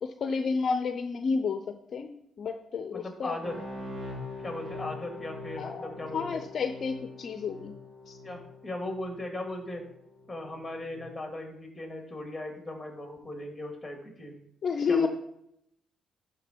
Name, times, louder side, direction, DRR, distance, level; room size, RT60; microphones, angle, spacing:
voice 1, 0.0-1.6 1.9-3.4 4.8-5.0 5.6-7.7 8.1-8.2 14.6-15.1, left 5 dB, 55° left, 7 dB, 0.5 m, -31 dB
voice 2, 2.9-3.6 4.4-6.4 8.2-9.8 10.3-14.4 14.9-15.1, left 1 dB, 10° left, 2 dB, 2.4 m, -38 dB
sound 1, 3.4-11.0, left 2 dB, 50° right, 2.3 m, -43 dB
11.0 x 3.8 x 4.5 m, 0.74 s
cardioid pair, 90°, 0 cm